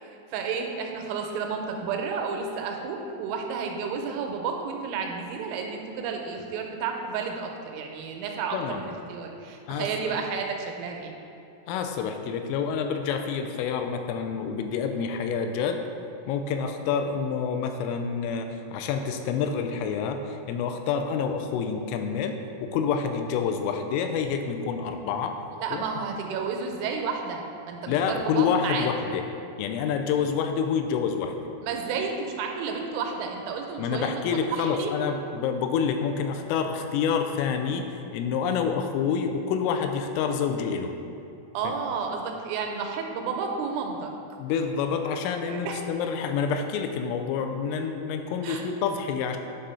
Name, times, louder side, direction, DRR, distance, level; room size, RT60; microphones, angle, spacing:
voice 1, 0.0-11.1 25.6-27.4 27.7-28.9 31.6-34.9 41.5-44.1 45.5-45.8 48.4-48.6, right 5 dB, 90° right, 2 dB, 3.3 m, -31 dB
voice 2, 9.7-10.2 11.7-15.8 16.3-25.4 25.7-25.8 27.9-29.2 29.6-31.4 33.8-40.9 41.6-41.7 44.4-49.4, left 6 dB, 85° left, 6 dB, 3.1 m, -28 dB
9.0 x 3.8 x 5.5 m, 2.6 s
omnidirectional pair, 5.7 m